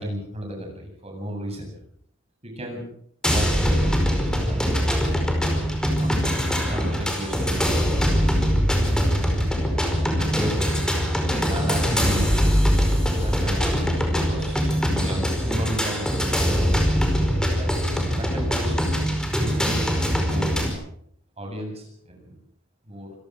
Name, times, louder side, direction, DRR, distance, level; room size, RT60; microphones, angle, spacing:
voice 1, 0.0-1.7 2.4-2.8 3.3-4.8 6.0-6.3 6.6-7.6 8.0-8.5 9.2-10.8 11.2-12.6 13.0-16.4 17.3-19.9 20.3-20.5 21.4-22.4 22.9-23.1, equal, 30° right, 2 dB, 7.9 m, -34 dB
sound 1, 3.2-20.7, equal, 5° left, 5.0 m, -22 dB
26.5 x 17.0 x 6.3 m, 0.70 s
head